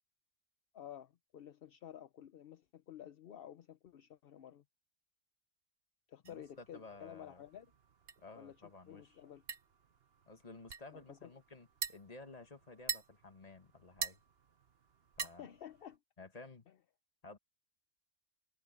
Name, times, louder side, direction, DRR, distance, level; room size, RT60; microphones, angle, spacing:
voice 1, 0.7-4.6 6.1-7.7 8.3-8.6 8.9-9.4 10.9-11.3 15.4-16.0, left 10 dB, 50° left, 0.7 m, -52 dB
voice 2, 6.2-7.4 8.2-9.2 10.3-14.2 15.2-15.5 16.2-16.7 17.2-17.4, left 3 dB, 25° left, 1.7 m, -54 dB
sound 1, 6.2-16.0, right 6 dB, 45° right, 1.2 m, -47 dB
open air
omnidirectional pair, 1.5 m